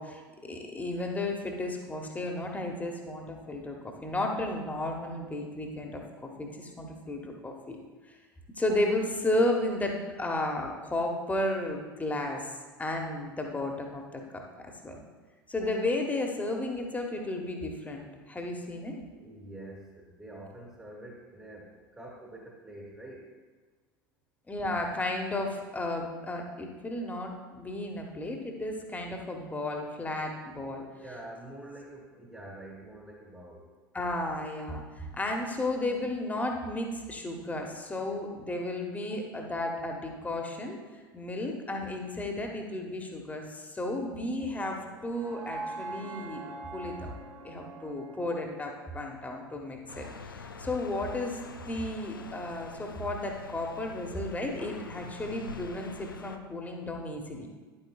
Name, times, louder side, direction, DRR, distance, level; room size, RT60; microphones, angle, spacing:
voice 1, 0.0-7.8 8.6-12.5 12.8-14.4 14.8-15.0 15.5-19.0 24.5-30.8 33.9-40.8 41.1-47.1 47.4-51.4 51.7-57.5, left 1 dB, 15° left, 2 dB, 1.3 m, -33 dB
voice 2, 19.2-23.3 30.8-33.7, right 1 dB, 10° right, -2 dB, 1.4 m, -46 dB
sound 1, 43.8-49.9, right 3 dB, 30° right, 1.4 m, -44 dB
sound 2, 49.9-56.4, left 4 dB, 80° left, 0.4 m, -45 dB
10.5 x 8.6 x 2.4 m, 1.4 s
figure-of-eight pair, 70°, 11 cm